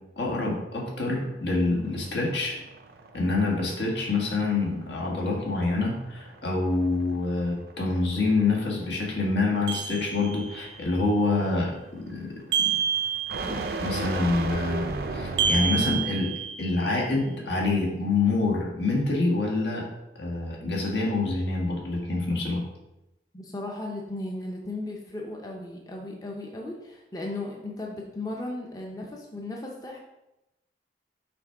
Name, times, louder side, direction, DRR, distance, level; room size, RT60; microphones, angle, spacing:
voice 1, 0.2-2.6 3.1-12.3 13.5-16.3 16.6-19.8 20.2-22.6, left 3 dB, 80° left, -2 dB, 1.6 m, -26 dB
sound 1, 1.7-16.3, right 2 dB, 60° right, 0.5 m, -37 dB
sound 2, 9.7-10.7 12.5-13.8 15.4-16.9, right 7 dB, 80° right, 1.0 m, -28 dB
voice 2, 23.3-30.0, left 2 dB, 20° left, -1 dB, 0.6 m, -36 dB
6.1 x 3.5 x 4.6 m, 0.93 s
head